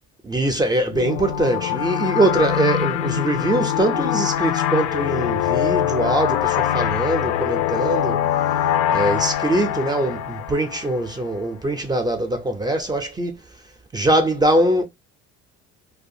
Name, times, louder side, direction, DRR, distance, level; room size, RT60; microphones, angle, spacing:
voice 1, 0.2-8.2 8.9-13.4 13.9-14.8, right 1 dB, 15° right, 0.4 m, -22 dB
sound 1, 0.9-11.3, left 11 dB, 80° left, 0.5 m, -23 dB
2.4 x 2.3 x 2.7 m
cardioid pair, 115°, 30 cm